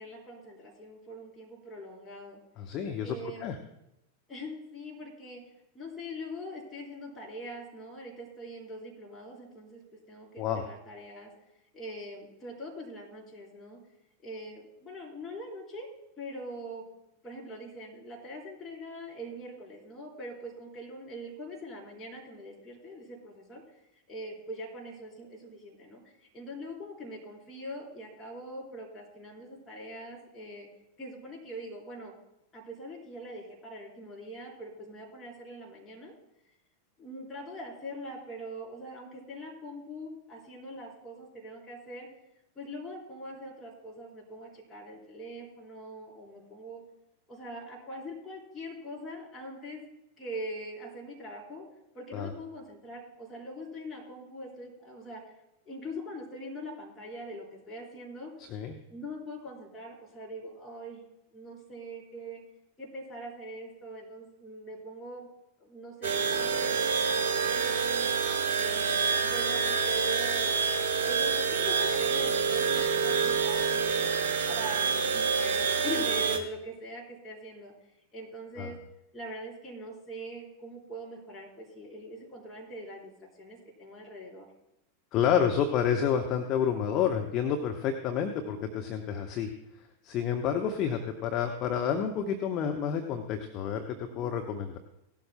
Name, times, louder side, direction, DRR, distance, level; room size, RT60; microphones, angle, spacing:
voice 1, 0.0-2.4 3.0-3.5 4.3-5.4 5.7-9.8 10.1-11.3 11.7-13.8 14.2-15.9 16.2-16.8 17.2-23.6 24.1-26.0 26.3-30.7 31.0-32.1 32.5-36.1 37.0-42.1 42.6-46.8 47.3-49.8 50.2-51.7 51.9-55.2 55.7-58.3 58.9-61.1 61.3-62.4 62.8-65.3 65.6-68.1 68.5-70.5 71.0-77.7 78.1-78.8 79.1-84.5 94.1-94.3, equal, 20° left, -2 dB, 4.0 m, -42 dB
voice 2, 2.6-3.1 3.4-3.5 10.4-10.6 52.1-52.3 58.5-58.8 78.6-78.7 85.1-89.5 90.0-94.8, left 8 dB, 35° left, 4 dB, 0.9 m, -29 dB
sound 1, 66.0-76.4, right 5 dB, 55° right, 1.3 m, -27 dB
17.5 x 12.5 x 2.2 m, 0.84 s
figure-of-eight pair, 90°, 0 cm